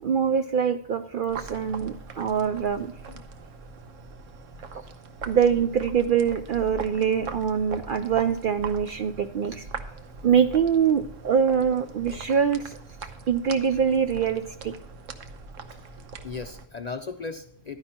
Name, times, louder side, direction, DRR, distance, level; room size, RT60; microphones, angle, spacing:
voice 1, 0.0-2.9 5.3-9.7 10.2-12.8 13.3-14.7, right 7 dB, 60° right, 9 dB, 0.5 m, -24 dB
sound 1, 1.3-16.7, right 4 dB, 85° right, 1.2 m, -41 dB
voice 2, 3.1-3.4 4.5-5.0 10.2-10.3 13.2-13.3 15.2-15.3 15.7-17.8, left 4 dB, 50° left, 6 dB, 0.5 m, -39 dB
11.5 x 9.7 x 2.9 m, 0.69 s
omnidirectional pair, 1.3 m